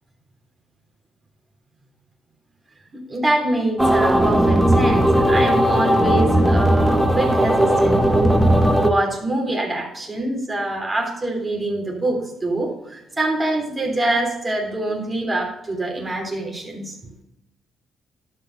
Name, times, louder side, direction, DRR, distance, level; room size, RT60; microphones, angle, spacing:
voice 1, 2.9-8.4 8.8-16.9, right 2 dB, 25° right, -1 dB, 3.5 m, -25 dB
sound 1, 3.8-8.9, right 1 dB, 5° right, 1.3 m, -17 dB
12.5 x 5.6 x 6.5 m, 0.87 s
cardioid pair, 90°, 0 cm